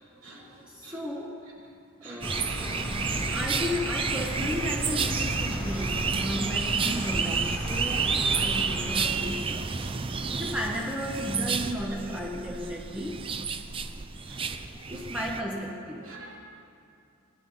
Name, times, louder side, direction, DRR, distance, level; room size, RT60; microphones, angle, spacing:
voice 1, 0.6-1.4 2.0-2.4 3.1-10.0 10.3-13.5 14.9-16.1, equal, 5° right, -2 dB, 0.9 m, -34 dB
sound 1, 2.2-9.1, equal, 15° left, 2.3 m, -35 dB
sound 2, 2.2-15.4, right 5 dB, 25° right, 0.4 m, -30 dB
voice 2, 2.6-3.4 6.8-7.1 9.2-9.3 9.8-9.9 14.3-14.5 16.0-16.4, right 2 dB, 70° right, -3 dB, 2.7 m, -42 dB
19.5 x 11.0 x 3.9 m, 2.4 s
head